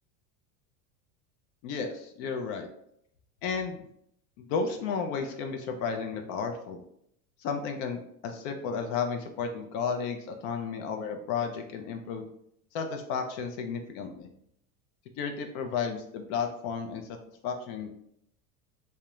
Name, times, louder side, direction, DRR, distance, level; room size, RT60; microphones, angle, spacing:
voice 1, 1.6-2.7 3.4-3.8 4.4-6.8 7.4-12.3 12.7-14.3 15.2-17.1 17.4-17.9, left 5 dB, 60° left, 5 dB, 0.5 m, -33 dB
2.3 x 2.1 x 2.9 m, 0.73 s
supercardioid pair, 130°, 41 cm